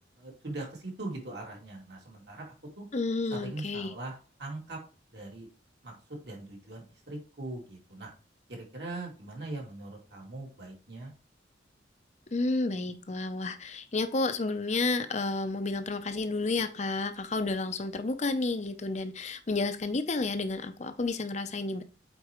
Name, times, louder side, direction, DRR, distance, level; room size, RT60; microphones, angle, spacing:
voice 1, 0.2-2.9 3.3-4.8 5.1-5.5 5.8-6.0 6.2-8.1 8.5-11.1, right 2 dB, 60° right, 2.5 m, -41 dB
voice 2, 2.9-3.9 12.3-21.8, left 3 dB, 40° left, 0.6 m, -31 dB
8.0 x 4.6 x 3.0 m
head